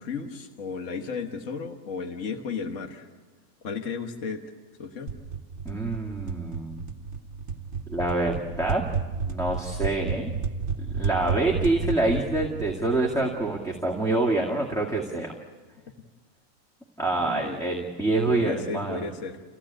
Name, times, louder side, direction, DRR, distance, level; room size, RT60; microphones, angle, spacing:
voice 1, 0.0-3.1 3.6-4.4 4.8-5.2 17.2-17.6 18.2-19.4, left 5 dB, 60° left, 3 dB, 1.6 m, -34 dB
sound 1, 5.1-13.7, right 5 dB, 55° right, 1.2 m, -32 dB
voice 2, 5.7-6.9 7.9-8.8 9.2-10.3 10.9-15.3 17.0-19.0, right 2 dB, ahead, -3 dB, 2.0 m, -26 dB
29.5 x 16.0 x 8.9 m, 1.4 s
omnidirectional pair, 1.5 m